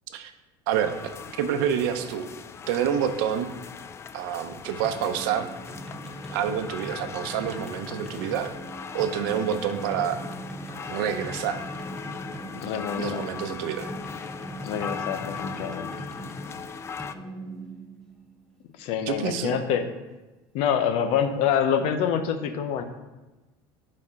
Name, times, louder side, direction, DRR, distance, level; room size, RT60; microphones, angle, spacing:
sound 1, 0.7-17.1, left 6 dB, 25° left, 0.3 m, -39 dB
voice 1, 1.3-2.3 2.7-3.5 4.1-5.5 6.3-8.5 8.9-10.2 10.9-11.6 13.0-13.9 19.1-19.6, right 9 dB, 85° right, 8 dB, 0.7 m, -27 dB
sound 2, 4.8-18.4, right 1 dB, 5° left, 1.0 m, -40 dB
voice 2, 12.6-13.2 14.6-15.9 18.8-19.8 20.5-22.8, left 8 dB, 65° left, 8 dB, 0.8 m, -26 dB
10.5 x 4.3 x 3.8 m, 1.1 s
cardioid pair, 130°, 11 cm